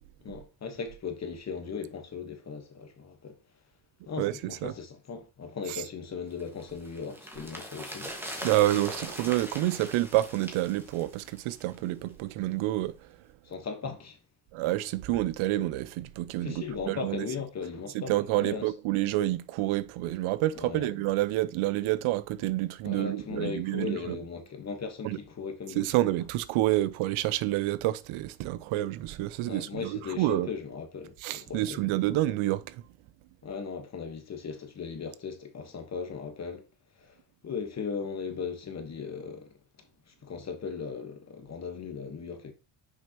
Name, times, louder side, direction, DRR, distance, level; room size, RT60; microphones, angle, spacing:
voice 1, 0.2-3.4 4.1-8.1 13.4-14.2 16.4-18.1 18.4-18.7 20.5-20.9 22.8-25.9 29.5-31.9 33.4-36.7 37.0-37.2 37.4-39.5 40.2-42.5, left 5 dB, 35° left, 1.2 m, -37 dB
voice 2, 4.2-4.7 5.7-5.8 8.4-12.9 14.5-17.3 17.9-24.2 25.0-25.2 25.8-30.5 31.2-32.8, right 16 dB, 90° right, 0.6 m, -28 dB
sound 1, 6.4-11.8 12.1-12.2, equal, 5° right, 1.5 m, -41 dB
6.3 x 5.2 x 2.9 m
cardioid pair, 130°, 48 cm